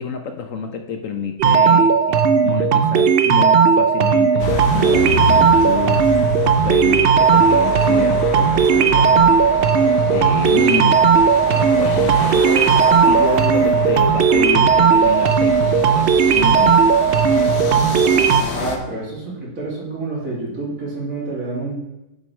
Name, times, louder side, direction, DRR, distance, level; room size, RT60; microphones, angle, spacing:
voice 1, 0.0-1.9 2.4-6.1 6.4-9.3 9.6-11.1 11.5-16.9, left 6 dB, 65° left, 5 dB, 1.0 m, -28 dB
sound 1, 1.4-18.4, right 6 dB, 85° right, 0.5 m, -15 dB
sound 2, 4.4-18.8, left 5 dB, 90° left, 1.4 m, -28 dB
voice 2, 18.5-21.8, right 3 dB, 60° right, -5 dB, 3.0 m, -28 dB
7.7 x 7.0 x 3.2 m, 0.93 s
omnidirectional pair, 1.6 m